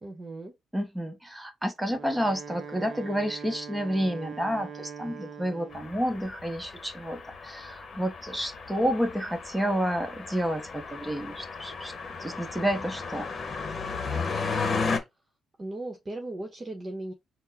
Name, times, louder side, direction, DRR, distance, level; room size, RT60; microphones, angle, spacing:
voice 1, 0.0-0.5 15.6-17.1, right 2 dB, 30° right, 1.1 m, -37 dB
voice 2, 0.7-11.9 12.2-13.3, equal, 5° right, 0.9 m, -30 dB
Wind instrument woodwind instrument, 1.8-6.0, right 6 dB, 45° right, 0.6 m, -42 dB
sound 1, 5.7-15.0, left 4 dB, 40° left, 1.1 m, -34 dB
4.5 x 2.2 x 4.1 m
cardioid pair, 90°, 0 cm